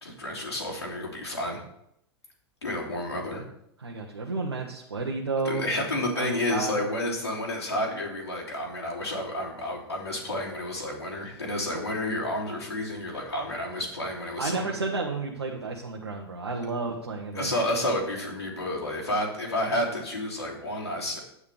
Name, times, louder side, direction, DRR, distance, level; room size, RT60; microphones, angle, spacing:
voice 1, 0.0-1.6 2.6-3.4 5.4-14.7 17.3-21.2, left 1 dB, 80° left, -4 dB, 3.0 m, -30 dB
voice 2, 3.8-5.8 6.1-6.8 14.4-17.5, right 3 dB, 75° right, -1 dB, 1.2 m, -31 dB
9.7 x 8.7 x 3.4 m, 0.75 s
figure-of-eight pair, 95°, 13 cm